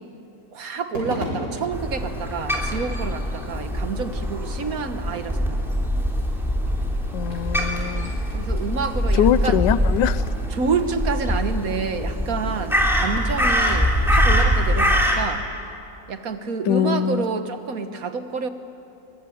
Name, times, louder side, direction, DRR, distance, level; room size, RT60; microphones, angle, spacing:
voice 1, 0.5-5.9 8.3-9.6 10.5-15.4 16.1-18.5, right 4 dB, 50° right, 8 dB, 1.7 m, -28 dB
Crowd / Fireworks, 0.9-15.3, equal, 75° right, 6.2 m, -41 dB
Crow, 1.7-15.2, equal, ahead, 3.1 m, -23 dB
voice 2, 7.1-8.1 9.1-10.2 16.7-17.2, left 10 dB, 75° left, 15 dB, 1.3 m, -22 dB
22.5 x 22.0 x 9.4 m, 2.8 s
omnidirectional pair, 2.0 m